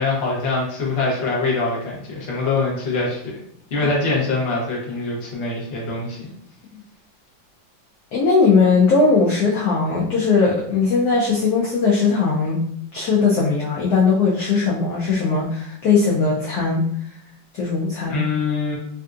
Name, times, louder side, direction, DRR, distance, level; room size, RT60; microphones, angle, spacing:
voice 1, 0.0-3.4 3.7-6.3 18.1-18.8, left 3 dB, 45° left, -3 dB, 0.9 m, -23 dB
voice 2, 8.1-12.6 12.9-16.8 17.5-18.2, left 4 dB, 70° left, -4 dB, 1.0 m, -19 dB
3.4 x 2.6 x 2.4 m, 0.68 s
omnidirectional pair, 2.1 m